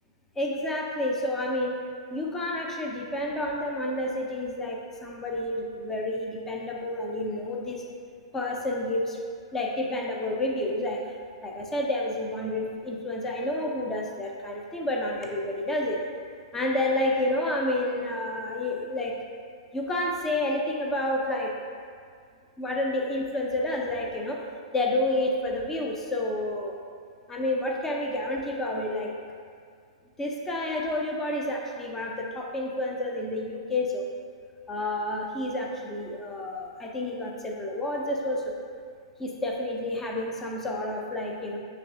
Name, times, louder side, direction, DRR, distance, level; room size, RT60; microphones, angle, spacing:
voice 1, 0.4-1.7 2.1-7.8 8.3-9.2 9.5-11.0 11.4-16.0 16.5-19.2 19.7-21.5 22.6-24.4 24.7-26.8 27.3-29.1 30.2-34.1 34.7-38.5 39.2-41.6, left 1 dB, 10° left, 0 dB, 0.5 m, -29 dB
5.9 x 3.3 x 2.6 m, 2.1 s
figure-of-eight pair, 105°, 3 cm